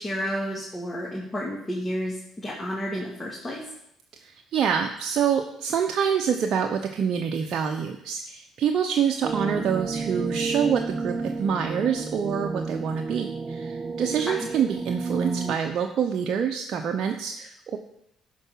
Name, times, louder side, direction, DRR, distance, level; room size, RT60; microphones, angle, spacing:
voice 1, 0.0-3.6 14.3-14.5, equal, 20° left, -4 dB, 2.5 m, -31 dB
voice 2, 4.2-17.8, right 7 dB, 60° right, 4 dB, 0.7 m, -26 dB
sound 1, 9.2-15.6, right 4 dB, 30° right, 0.8 m, -31 dB
11.5 x 4.7 x 5.7 m, 0.77 s
supercardioid pair, 65°, 0 cm